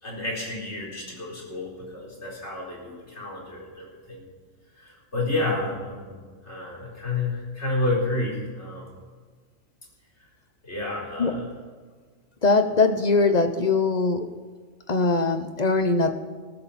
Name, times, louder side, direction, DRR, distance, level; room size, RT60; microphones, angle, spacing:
voice 1, 0.0-4.2 4.8-8.9 10.6-11.5, left 2 dB, 60° left, -3 dB, 4.9 m, -30 dB
voice 2, 12.4-14.3 14.9-16.1, left 3 dB, 35° left, 8 dB, 1.1 m, -21 dB
20.5 x 14.0 x 4.4 m, 1.5 s
omnidirectional pair, 1.3 m